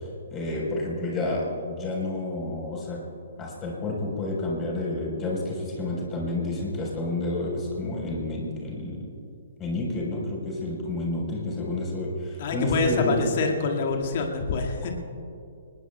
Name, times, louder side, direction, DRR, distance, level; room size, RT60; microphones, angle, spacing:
voice 1, 0.3-3.0 3.4-9.1 9.6-13.2, left 2 dB, 20° left, -2 dB, 4.1 m, -29 dB
voice 2, 12.4-14.9, left 3 dB, 45° left, 2 dB, 1.9 m, -26 dB
25.0 x 20.5 x 2.3 m, 2.6 s
figure-of-eight pair, 120°, 0 cm